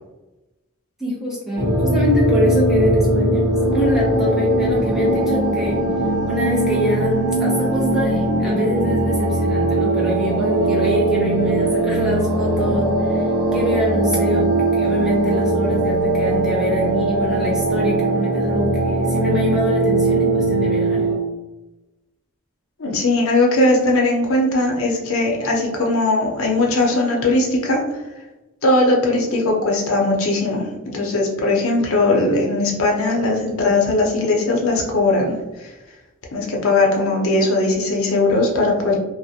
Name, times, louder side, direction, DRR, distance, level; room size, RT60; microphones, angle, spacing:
voice 1, 1.0-5.8 6.3-21.1, equal, ahead, -5 dB, 0.6 m, -24 dB
sound 1, 1.6-21.1, right 1 dB, 45° right, 0.8 m, -20 dB
voice 2, 22.8-27.8 28.6-35.7 36.3-39.0, left 2 dB, 75° left, -1 dB, 0.6 m, -19 dB
2.4 x 2.1 x 2.7 m, 1.0 s
head